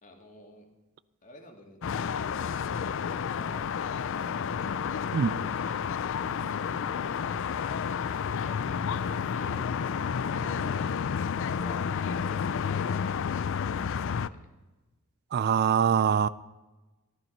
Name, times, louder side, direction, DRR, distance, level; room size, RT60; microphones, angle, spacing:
voice 1, 0.0-0.7 1.2-3.6 4.1-4.8 6.1-10.6 11.3-14.5, left 1 dB, 40° left, 2.3 m, -51 dB
sound 1, 1.8-14.3, left 7 dB, 65° left, 0.4 m, -30 dB
sound 2, 3.5-12.4, left 2 dB, 20° left, 2.6 m, -54 dB
sound 3, 5.8-6.8 7.5-10.0 10.3-11.4 11.7-11.8 12.1-12.4, right 3 dB, 75° right, 1.2 m, -49 dB
voice 2, 15.3-16.3, right 7 dB, 50° right, 0.3 m, -23 dB
14.0 x 12.5 x 5.3 m
head